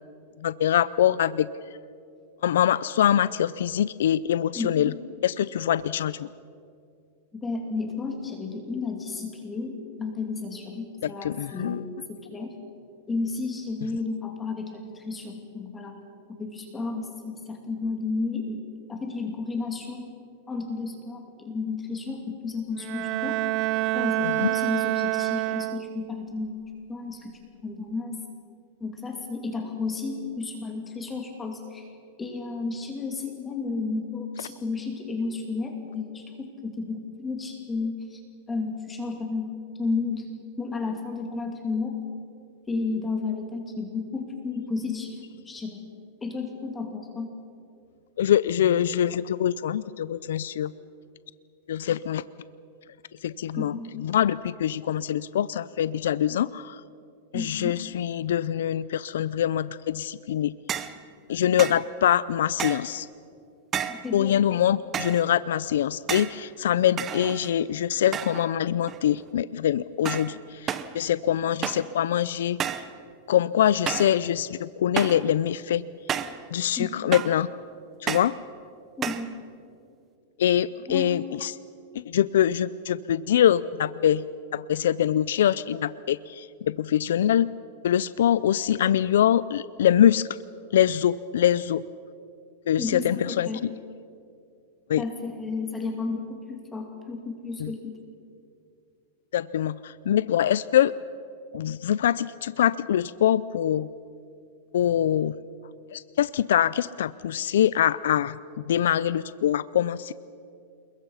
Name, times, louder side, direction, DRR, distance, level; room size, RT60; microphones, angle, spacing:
voice 1, 0.4-1.5 2.4-4.9 5.2-6.3 11.0-11.8 24.2-24.5 48.2-50.7 51.7-52.2 53.2-56.8 57.3-60.5 61.3-63.1 64.1-72.8 73.3-75.8 76.5-77.5 78.0-78.3 80.4-81.6 81.9-84.2 84.5-87.5 87.8-90.3 90.7-91.8 92.7-93.7 94.9-95.0 97.6-97.7 99.3-100.9 101.5-103.9 104.7-105.3 105.9-108.4 108.7-110.1, left 10 dB, 80° left, 17 dB, 0.5 m, -24 dB
voice 2, 4.6-5.0 7.3-12.5 13.1-16.0 16.3-18.6 18.9-20.1 20.5-23.4 23.9-26.6 26.9-28.2 28.8-31.9 32.2-38.2 38.5-39.5 39.8-40.3 40.6-42.0 42.7-45.2 45.4-45.9 46.2-47.3 53.6-53.9 57.3-57.8 63.9-64.4 76.8-76.9 79.0-79.3 80.9-81.1 92.8-93.6 95.0-98.0, left 4 dB, 15° left, 3 dB, 2.8 m, -32 dB
Bowed string instrument, 22.8-26.2, right 20 dB, 40° right, 0.5 m, -27 dB
sound 1, 60.7-61.0 61.6-61.9 62.6-63.0 63.7-64.1 64.9-65.3 66.1-66.4 67.0-67.6 68.1-68.5 68.8-69.3 70.1-70.4 70.7-71.0 71.6-71.9 72.6-72.9 73.9-74.2 75.0-75.3 76.1-76.4 77.1-77.4 78.1-78.4 79.0-79.3, right 8 dB, 25° right, 1.0 m, -31 dB
28.0 x 22.0 x 5.7 m, 2.4 s
supercardioid pair, 140°, 0 cm